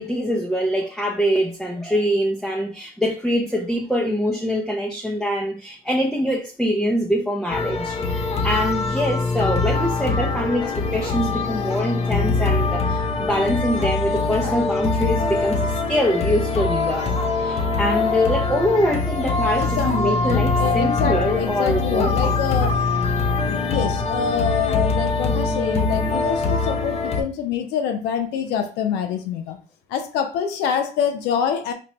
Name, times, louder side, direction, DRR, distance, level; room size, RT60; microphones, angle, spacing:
voice 1, 0.0-22.3, equal, ahead, 0.5 m, -24 dB
sound 1, 7.5-27.2, left 3 dB, 40° left, 0.6 m, -23 dB
voice 2, 19.6-22.8 23.5-29.6 29.9-31.7, left 8 dB, 90° left, 0.5 m, -25 dB
4.2 x 2.1 x 3.0 m
cardioid pair, 110°, 17 cm